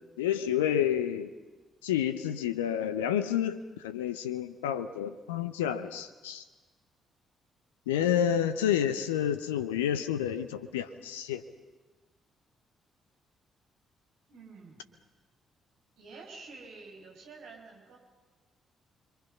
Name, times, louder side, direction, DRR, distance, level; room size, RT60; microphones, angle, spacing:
voice 1, 0.2-1.3 1.8-3.6 3.8-6.4 7.9-11.4, left 10 dB, 75° left, 12 dB, 0.7 m, -29 dB
voice 2, 14.3-14.9 16.0-18.0, right 4 dB, 65° right, -1 dB, 5.8 m, -49 dB
29.5 x 23.0 x 5.6 m, 1.3 s
figure-of-eight pair, 40°, 0 cm